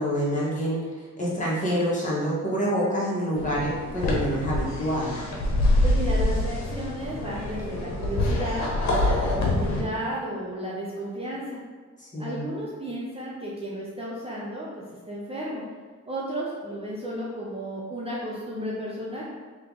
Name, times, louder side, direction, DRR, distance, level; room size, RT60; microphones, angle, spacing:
voice 1, 0.0-5.2 12.0-12.5, equal, 25° left, -7 dB, 1.5 m, -27 dB
sound 1, 3.4-9.8, left 1 dB, 65° left, 1.1 m, -25 dB
voice 2, 5.8-11.6 12.2-15.6 16.1-19.3, equal, 20° right, -6 dB, 0.7 m, -33 dB
3.2 x 3.1 x 3.8 m, 1.4 s
cardioid pair, 90°, 30 cm